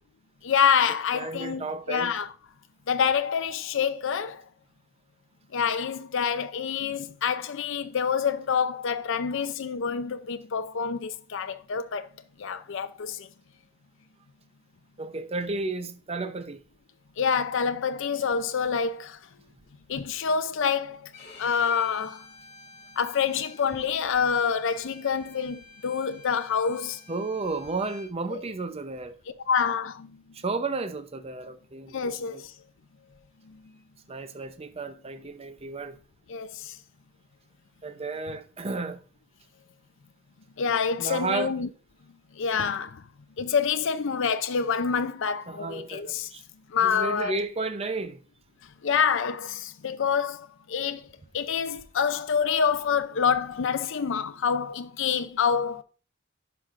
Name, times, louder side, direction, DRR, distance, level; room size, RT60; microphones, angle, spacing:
voice 1, 0.4-2.3 2.9-4.4 5.5-12.1 12.4-13.3 17.2-19.2 19.9-21.0 21.4-22.2 23.0-27.0 28.3-28.4 29.5-30.1 31.9-32.5 36.3-36.7 40.6-41.7 42.4-43.0 43.4-46.3 46.7-47.4 48.8-51.0 51.3-55.8, left 6 dB, 65° left, 0.5 m, -27 dB
voice 2, 1.1-2.1 15.0-16.6 27.1-29.1 30.3-32.4 34.1-36.0 37.8-39.0 41.0-41.5 45.5-46.4 46.8-48.2, right 3 dB, 30° right, 0.6 m, -33 dB
Bowed string instrument, 21.1-28.1, left 4 dB, 35° left, 2.2 m, -50 dB
10.5 x 5.9 x 2.5 m
head